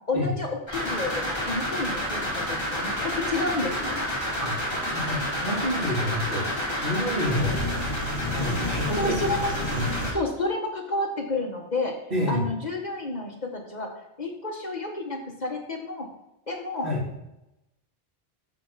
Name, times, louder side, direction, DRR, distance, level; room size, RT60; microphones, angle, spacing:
voice 1, 0.1-4.1 9.0-9.5 10.0-12.0 12.3-13.9 14.2-16.1 16.5-16.9, left 2 dB, 45° left, 1 dB, 1.5 m, -30 dB
sound 1, 0.7-10.1, equal, 25° left, 2.5 m, -29 dB
voice 2, 4.4-7.6 8.3-9.1 9.7-9.8 12.1-12.4 16.8-17.0, equal, 60° right, -5 dB, 3.6 m, -29 dB
9.1 x 7.3 x 4.1 m, 0.89 s
omnidirectional pair, 1.0 m